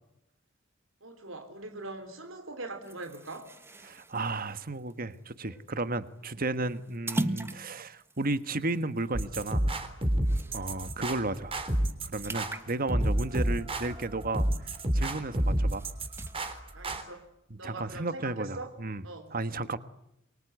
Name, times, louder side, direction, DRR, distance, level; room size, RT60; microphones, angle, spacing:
voice 1, 1.0-3.5 10.5-10.7 16.7-17.3 17.6-18.7 19.0-19.4, right 2 dB, 85° right, 7 dB, 3.7 m, -42 dB
sound 1, 2.8-10.8 11.2-11.4 11.7-14.6 15.0-16.6, right 1 dB, 15° right, 1.4 m, -41 dB
voice 2, 3.8-9.7 10.5-11.5 12.0-14.5 14.9-15.9 17.5-19.0 19.3-19.8, right 2 dB, 45° right, 12 dB, 1.5 m, -33 dB
sound 2, 9.1-17.0, right 1 dB, 30° right, 3.6 m, -29 dB
28.5 x 24.0 x 8.1 m, 0.82 s
head